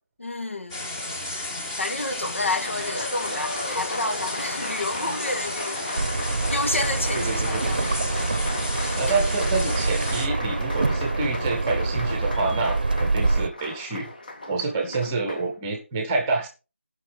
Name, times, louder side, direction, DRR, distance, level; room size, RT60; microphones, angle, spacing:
voice 1, 0.2-0.8 1.8-5.9 6.4-7.9 8.9-9.2 14.7-14.9, left 2 dB, 70° left, 2.1 m, -30 dB
sound 1, 0.7-10.3, left 1 dB, 10° left, 1.4 m, -33 dB
Applause, 2.2-15.5, left 2 dB, 40° left, 2.0 m, -35 dB
sound 2, 6.0-13.5, right 3 dB, 40° right, 0.8 m, -26 dB
voice 2, 7.1-7.8 8.9-14.1 14.5-16.5, right 3 dB, 10° right, 1.1 m, -28 dB
14.5 x 6.1 x 5.4 m
figure-of-eight pair, 165°, 7 cm